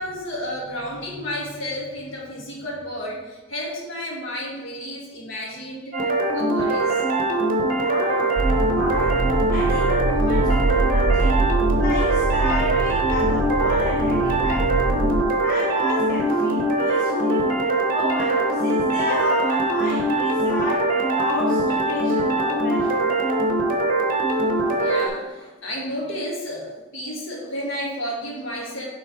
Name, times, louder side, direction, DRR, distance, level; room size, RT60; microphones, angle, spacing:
voice 1, 0.0-6.0 6.3-7.0 24.8-28.8, equal, 70° left, -3 dB, 1.8 m, -32 dB
sound 1, 5.9-25.1, right 1 dB, 40° right, 0.8 m, -22 dB
voice 2, 7.8-11.4 11.8-17.5 17.9-23.3, left 1 dB, 45° left, -4 dB, 0.9 m, -31 dB
sound 2, 8.4-15.2, right 3 dB, 80° right, 0.6 m, -24 dB
7.2 x 3.8 x 4.4 m, 1.2 s
head